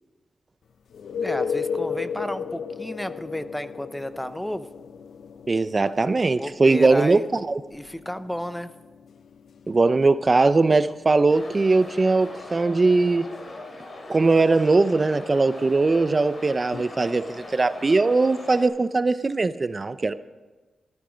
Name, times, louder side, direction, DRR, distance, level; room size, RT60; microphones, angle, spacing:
sound 1, 0.9-12.5 16.7-16.8, left 6 dB, 80° left, 0.7 m, -35 dB
voice 1, 1.2-4.7 6.4-7.3 7.7-8.7, equal, 5° left, 12 dB, 0.6 m, -32 dB
voice 2, 5.5-7.6 9.7-13.3 14.1-20.1, right 3 dB, 35° right, 13 dB, 0.6 m, -20 dB
sound 2, 11.3-18.6, left 2 dB, 50° left, 3.2 m, -40 dB
14.0 x 13.5 x 5.1 m, 1.3 s
cardioid pair, 75°, 0 cm